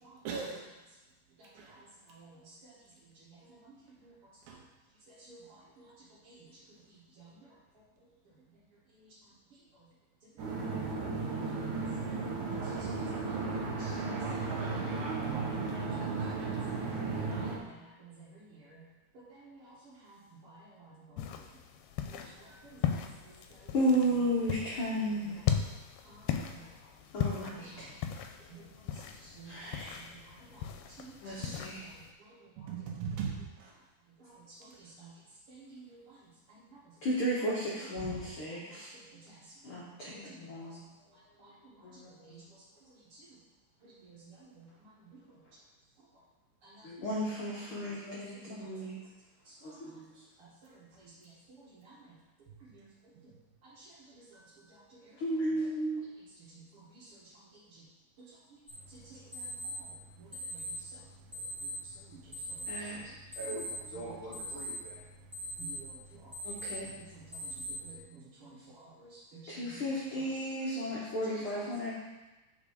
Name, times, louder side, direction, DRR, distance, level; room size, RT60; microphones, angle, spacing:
voice 1, 0.2-0.6 1.5-1.8 4.5-4.6 32.6-33.7 38.0-38.3, right 6 dB, 75° right, -1 dB, 3.0 m, -38 dB
sound 1, 10.4-17.6, right 4 dB, 60° right, 2.2 m, -34 dB
voice 2, 13.3-13.9 15.7-16.6 17.7-17.8 18.0-18.8 19.3-20.2 20.4-20.9 22.1-22.2 22.6-23.0 25.4-25.5 26.1-26.2 26.5-26.6 27.5-27.8 28.5-28.6 29.3-29.6 30.0-30.6 31.0-31.5 34.6-35.1 35.5-36.0 36.5-36.8 42.2-42.4 44.0-44.6 46.6-46.8 51.0-51.1 51.6-51.9 52.7-52.8 53.8-53.9 56.9-57.0 59.1-59.5 60.5-60.6 63.4-63.5 63.9-64.4 65.6-65.9 67.1-67.2 67.8-68.6 69.0-69.2 69.5-69.7, right 4 dB, 45° right, -6 dB, 2.4 m, -53 dB
sound 2, 21.2-32.1, left 8 dB, 85° left, 2.5 m, -38 dB
voice 3, 23.7-25.4 27.1-27.9 29.5-29.9 31.2-31.9 37.0-38.9 39.6-40.8 41.8-42.0 46.8-48.9 49.6-50.1 55.2-56.0 62.7-63.6 63.9-65.0 66.4-66.9 69.5-71.9, equal, 70° left, -6 dB, 1.2 m, -34 dB
sound 3, 58.7-68.0, equal, 20° right, 2.3 m, -43 dB
8.3 x 5.4 x 4.9 m, 1.1 s
omnidirectional pair, 4.4 m